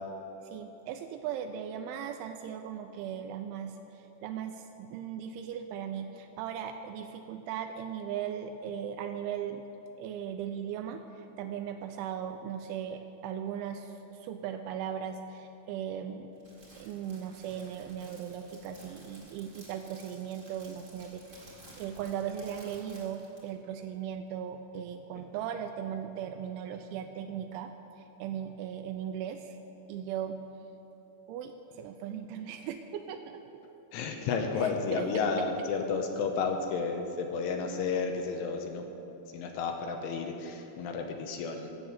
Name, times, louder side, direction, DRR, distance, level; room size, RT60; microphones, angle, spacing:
voice 1, 0.4-9.6 10.0-16.4 16.8-29.6 29.9-30.4 31.3-33.4 34.5-35.3, right 9 dB, 85° right, 7 dB, 2.8 m, -38 dB
Crackle, 16.3-23.5, right 1 dB, 50° right, 0.9 m, -54 dB
voice 2, 33.9-38.9 39.3-41.7, left 5 dB, 85° left, 4 dB, 3.3 m, -32 dB
15.0 x 7.6 x 7.2 m, 3.0 s
omnidirectional pair, 5.8 m